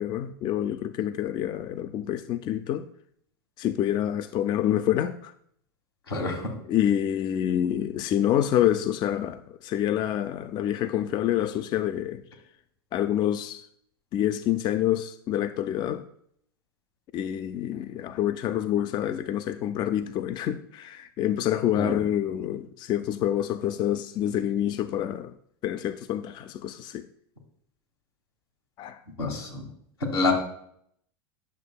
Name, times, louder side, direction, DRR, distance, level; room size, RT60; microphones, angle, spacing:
voice 1, 0.0-2.9 3.6-5.3 6.7-12.2 12.9-13.7 14.1-16.0 17.1-25.3 25.6-27.1 28.8-29.0, left 11 dB, 35° left, 0.4 m, -27 dB
voice 2, 6.1-6.5 21.8-21.9 29.2-29.6 30.0-30.3, left 3 dB, 90° left, 2.0 m, -27 dB
10.5 x 6.4 x 2.2 m
hypercardioid pair, 90°, 13 cm